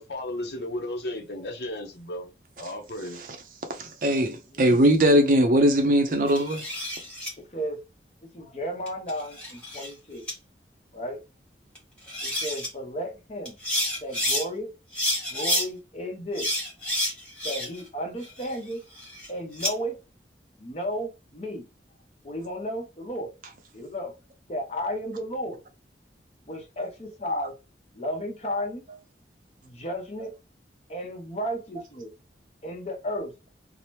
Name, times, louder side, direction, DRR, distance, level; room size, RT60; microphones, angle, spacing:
voice 1, 0.0-2.3 2.6-3.2, left 1 dB, 65° left, 0.7 m, -34 dB
voice 2, 3.8-6.6, equal, 50° right, 0.5 m, -20 dB
voice 3, 4.5-4.8 7.5-7.8 8.3-10.3 10.9-11.2 12.2-13.6 14.0-14.7 15.3-16.5 17.4-18.8 19.3-20.0 20.6-21.7 22.2-23.3 23.7-24.1 24.5-25.6 26.5-27.5 27.9-28.8 29.6-30.3 30.9-32.1 32.6-33.3, equal, 35° left, 0.8 m, -33 dB
sound 1, 6.3-7.3 8.9-9.9 10.3-10.4 11.7-11.8 12.1-12.7 13.4-14.4 14.9-15.7 16.3-17.9 18.2-19.7, left 1 dB, 5° left, 1.0 m, -29 dB
2.8 x 2.0 x 3.2 m
head